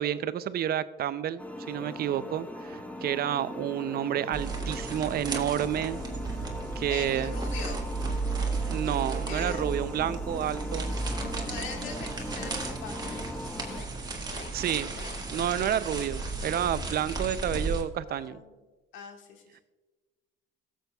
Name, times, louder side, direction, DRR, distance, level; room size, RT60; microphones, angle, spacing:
voice 1, 0.0-6.0 6.8-7.3 8.7-11.0 14.5-14.9 15.3-18.4, right 10 dB, 55° right, 15 dB, 0.5 m, -30 dB
sound 1, 1.4-13.8, left 1 dB, 5° left, 1.0 m, -40 dB
sound 2, 4.3-17.8, right 3 dB, 20° right, 1.7 m, -34 dB
voice 2, 6.9-7.9 9.3-9.6 11.4-13.2 18.1-18.5 18.9-19.4, left 5 dB, 80° left, 3 dB, 1.7 m, -41 dB
sound 3, 11.1-11.4 11.8-12.1 12.4-12.7 13.0-13.2 13.7-13.9 14.3-14.5 15.0-15.1 15.6-15.8, left 7 dB, 65° left, 1.0 m, -44 dB
15.0 x 7.5 x 2.3 m, 1.3 s
cardioid pair, 90°, 20 cm